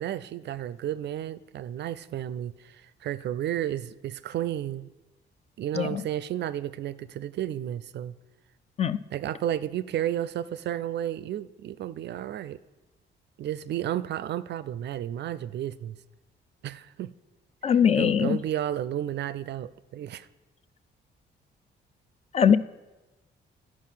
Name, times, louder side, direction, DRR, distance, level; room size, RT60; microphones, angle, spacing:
voice 1, 0.0-4.9 5.6-8.1 9.1-12.6 13.4-16.0 16.6-17.1 18.0-20.3, right 11 dB, 60° right, 0.4 m, -32 dB
voice 2, 17.6-18.4 22.3-22.6, left 8 dB, 35° left, 0.3 m, -21 dB
10.5 x 4.8 x 5.7 m
cardioid pair, 90°, 20 cm